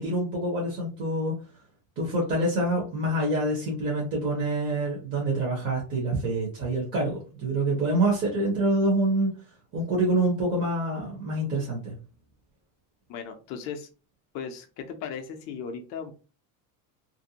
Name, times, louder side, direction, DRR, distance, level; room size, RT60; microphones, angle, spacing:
voice 1, 0.0-1.4 2.0-9.4 9.7-12.0, right 1 dB, 25° right, -3 dB, 0.7 m, -26 dB
voice 2, 13.1-13.9 14.3-16.1, left 6 dB, 40° left, 5 dB, 0.4 m, -37 dB
2.5 x 2.1 x 2.8 m, 0.34 s
cardioid pair, 165°, 46 cm